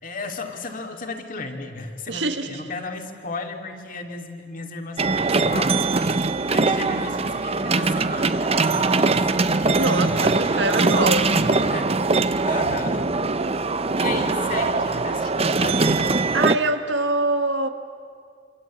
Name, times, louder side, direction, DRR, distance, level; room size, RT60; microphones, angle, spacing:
voice 1, 0.0-5.8 6.5-9.3 10.0-11.4 11.7-12.0 12.4-13.0 14.0-16.0, left 3 dB, 50° left, 4 dB, 2.7 m, -34 dB
voice 2, 2.1-2.6 9.7-11.3 11.8-12.0 16.3-17.7, right 2 dB, 90° right, 8 dB, 1.7 m, -24 dB
sound 1, 5.0-16.6, right 3 dB, 35° right, 0.8 m, -21 dB
27.0 x 26.5 x 8.5 m, 2.2 s
head